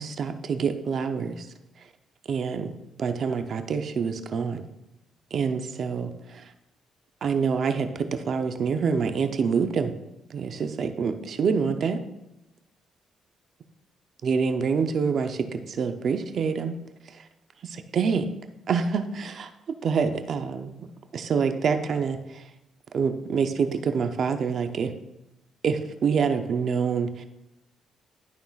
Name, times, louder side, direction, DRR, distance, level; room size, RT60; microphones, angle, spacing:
voice 1, 0.0-1.5 2.3-2.7 3.0-4.7 5.3-6.4 7.2-9.9 10.3-12.0 14.2-16.8 17.6-18.3 18.7-19.5 19.8-20.8 21.1-22.4 22.9-24.9 25.6-27.2, right 6 dB, 55° right, 7 dB, 0.6 m, -26 dB
11.5 x 5.5 x 2.4 m, 0.88 s
cardioid pair, 90°, 0 cm